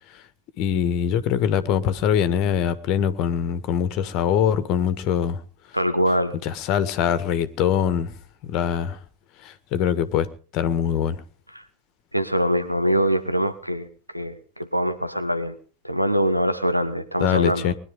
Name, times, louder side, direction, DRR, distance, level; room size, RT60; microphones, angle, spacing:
voice 1, 0.6-5.4 6.4-8.1 8.4-9.0 9.4-10.3 10.5-11.2 17.2-17.7, left 8 dB, 40° left, 1.5 m, -23 dB
voice 2, 5.7-6.4 12.1-13.9 14.1-15.6 15.8-17.7, equal, 90° right, 1.4 m, -23 dB
21.0 x 11.0 x 5.2 m
figure-of-eight pair, 90°, 0 cm